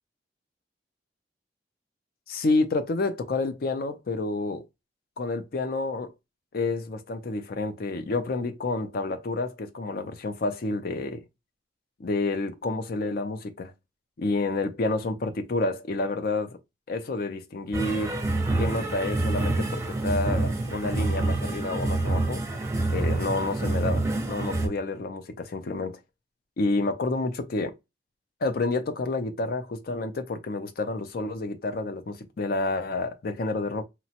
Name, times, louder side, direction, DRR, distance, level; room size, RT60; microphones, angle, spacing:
voice 1, 2.3-4.7 5.2-6.1 6.5-11.3 12.0-13.7 14.2-16.6 16.9-18.2 18.6-22.4 22.9-26.0 26.6-27.8 28.4-33.9, left 3 dB, 55° left, 0.5 m, -29 dB
sound 1, 17.7-24.7, right 2 dB, 15° right, 0.6 m, -27 dB
2.8 x 2.1 x 2.8 m
head